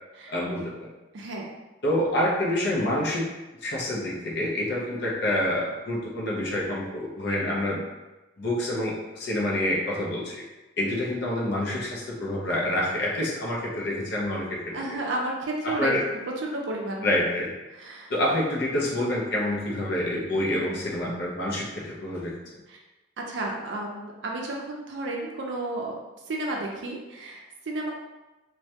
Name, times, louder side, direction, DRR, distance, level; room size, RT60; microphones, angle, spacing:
voice 1, 0.3-0.9 1.8-3.3 3.6-7.8 8.4-10.4 10.8-14.8 15.6-16.0 17.0-17.5 18.1-22.4, left 1 dB, 50° left, -3 dB, 0.5 m, -27 dB
voice 2, 1.1-1.5 4.7-5.0 10.8-11.1 14.7-15.9 16.4-17.1 17.7-18.1 20.5-20.8 22.7-22.8 23.2-26.0 26.3-27.9, right 2 dB, 60° right, 0 dB, 0.4 m, -32 dB
2.2 x 2.1 x 2.7 m, 1.1 s
head